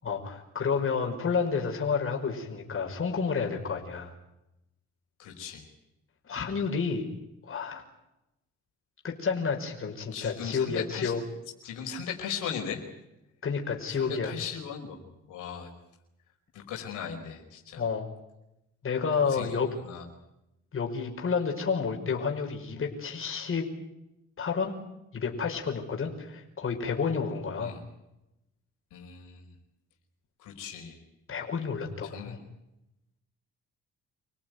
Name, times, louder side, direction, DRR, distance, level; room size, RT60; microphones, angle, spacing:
voice 1, 0.0-4.1 6.2-7.0 7.4-7.8 9.0-11.2 13.4-14.3 17.8-18.1 18.8-19.7 20.7-23.7 24.4-24.8 25.1-27.8 31.3-32.4, left 5 dB, 45° left, 2 dB, 5.5 m, -30 dB
voice 2, 5.2-5.7 10.1-11.1 11.6-12.8 13.9-15.0 15.3-15.7 16.5-17.8 19.2-20.0 27.6-27.8 28.9-29.5 30.4-31.0 32.0-32.4, left 7 dB, 90° left, 1 dB, 5.2 m, -38 dB
28.0 x 18.0 x 9.5 m, 0.90 s
cardioid pair, 90°, 30 cm